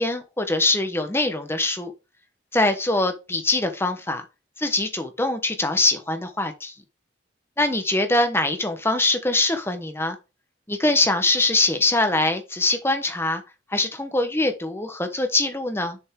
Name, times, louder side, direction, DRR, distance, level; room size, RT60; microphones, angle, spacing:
voice 1, 0.0-1.9 2.5-4.2 4.6-6.7 7.6-10.2 10.7-13.4 13.7-16.0, left 2 dB, 10° left, 1.1 m, -23 dB
6.8 x 5.2 x 3.7 m
head